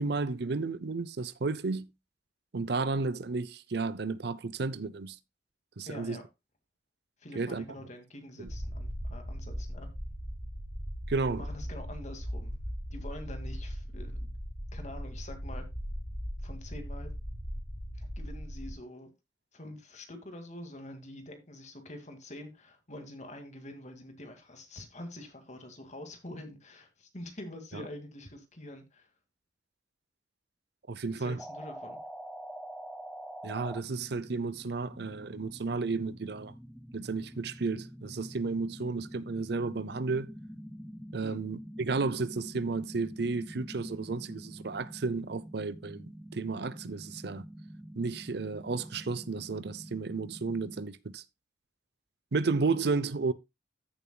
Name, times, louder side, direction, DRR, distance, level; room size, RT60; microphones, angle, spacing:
voice 1, 0.0-1.9 2.5-5.2 5.8-6.2 7.3-7.7 8.4-8.5 11.1-11.5 27.7-27.8 30.9-31.4 33.4-36.5 36.9-40.3 41.1-47.5 47.9-51.2 52.3-53.3, right 4 dB, 60° right, 0.6 m, -32 dB
voice 2, 5.9-6.2 7.2-9.9 11.3-12.5 12.9-14.3 14.7-15.7 16.4-17.1 17.9-19.1 19.5-29.1 31.1-32.0 41.2-41.4, left 1 dB, 40° left, 2.1 m, -46 dB
sound 1, 8.5-18.7, equal, 60° left, 3.4 m, -38 dB
sound 2, 31.4-50.8, equal, ahead, 0.6 m, -46 dB
14.5 x 7.0 x 2.2 m
head